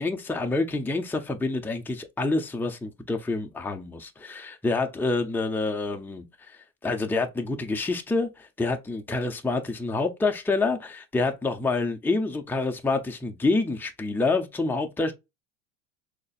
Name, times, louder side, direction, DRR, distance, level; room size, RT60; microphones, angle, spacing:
voice 1, 0.0-15.1, left 3 dB, 5° left, 0.8 m, -27 dB
6.3 x 2.9 x 2.4 m
hypercardioid pair, 80°, 39 cm